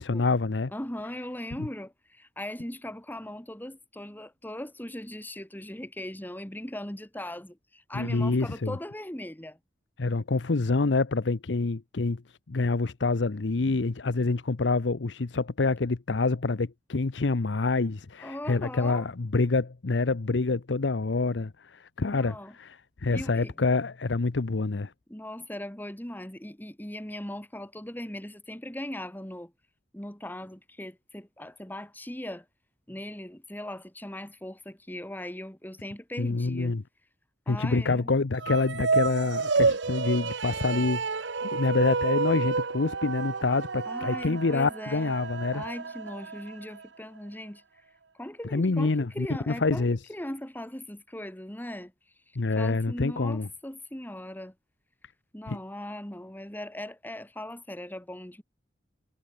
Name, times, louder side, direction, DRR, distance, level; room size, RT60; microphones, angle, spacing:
voice 1, 0.0-0.7 1.6-1.7 7.9-8.8 10.0-24.9 36.2-36.8 37.5-45.6 48.5-50.0 52.4-53.5 55.5-55.6, left 3 dB, 85° left, 0.8 m, -27 dB
voice 2, 0.7-9.6 18.2-19.1 22.1-22.5 23.1-23.5 25.1-29.5 29.9-32.5 32.9-36.7 37.5-38.1 43.9-45.1 45.5-47.6 48.2-51.9 52.6-54.5 55.3-58.4, left 1 dB, 10° left, 2.0 m, -39 dB
sound 1, 38.3-46.8, right 4 dB, 80° right, 1.0 m, -30 dB
head